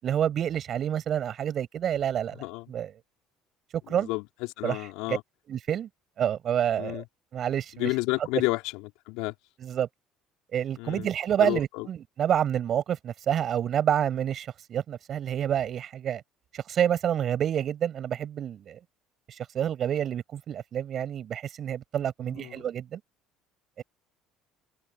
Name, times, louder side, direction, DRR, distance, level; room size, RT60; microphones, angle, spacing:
voice 1, 0.0-2.9 3.9-4.1 4.6-5.2 5.5-5.9 6.2-7.0 7.3-7.9 9.6-9.9 10.5-16.2 16.5-18.8 19.3-23.0 23.8-23.9, right 9 dB, 50° right, 6.8 m, -28 dB
voice 2, 3.9-4.2 4.6-5.2 6.8-7.0 7.8-8.7 9.1-9.3 10.8-11.1 11.4-11.9 22.4-22.5, left 24 dB, 70° left, 3.3 m, -30 dB
hypercardioid pair, 60°, 0 cm